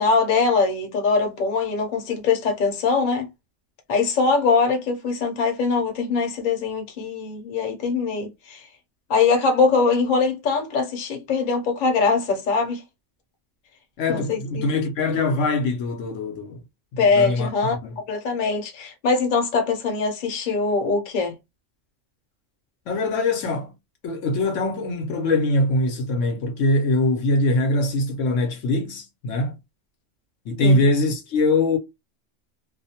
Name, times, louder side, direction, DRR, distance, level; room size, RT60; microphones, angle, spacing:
voice 1, 0.0-3.3 3.9-8.6 9.1-12.8 14.1-14.6 17.0-17.8 18.1-21.3 30.6-30.8, left 4 dB, 45° left, 0.8 m, -22 dB
voice 2, 14.0-16.6 16.9-18.0 22.9-23.7 24.0-29.6 30.5-31.8, left 2 dB, 80° left, 1.0 m, -22 dB
2.5 x 2.1 x 2.7 m
omnidirectional pair, 1.3 m